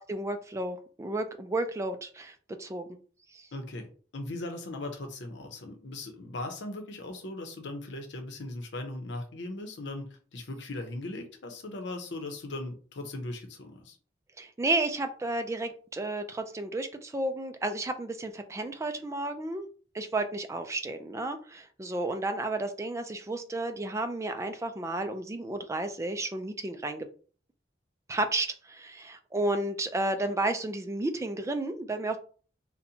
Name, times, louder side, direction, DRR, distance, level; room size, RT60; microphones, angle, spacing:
voice 1, 0.1-2.9 3.3-3.5 14.4-19.6 19.9-27.1 28.1-32.2, right 2 dB, 15° right, 7 dB, 0.3 m, -32 dB
voice 2, 3.5-14.0, left 2 dB, 90° left, 5 dB, 0.8 m, -39 dB
4.0 x 2.2 x 2.8 m, 0.40 s
head